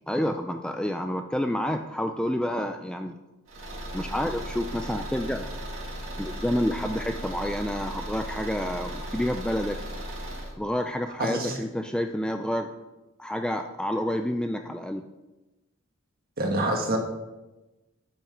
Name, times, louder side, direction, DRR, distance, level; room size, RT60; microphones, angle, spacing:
voice 1, 0.1-3.2 3.9-5.5 6.2-9.8 10.6-12.7 13.2-15.1, equal, 5° left, 6 dB, 0.3 m, -29 dB
Car / Engine, 3.5-10.5, right 1 dB, 65° right, 2.2 m, -36 dB
voice 2, 11.2-11.6 16.4-17.0, right 1 dB, 45° right, 1 dB, 1.6 m, -26 dB
9.0 x 5.8 x 5.6 m, 1.1 s
head